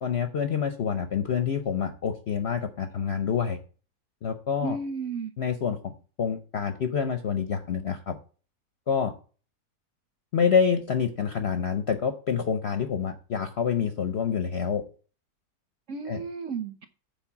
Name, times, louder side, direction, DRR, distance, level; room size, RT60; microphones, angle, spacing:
voice 1, 0.0-3.6 4.2-4.8 5.4-5.9 6.2-8.2 8.9-9.1 10.3-14.8 16.0-16.2, left 7 dB, 55° left, 0.7 m, -27 dB
voice 2, 4.6-5.3 15.9-16.9, right 4 dB, 55° right, 1.0 m, -33 dB
7.3 x 4.6 x 7.1 m
omnidirectional pair, 1.8 m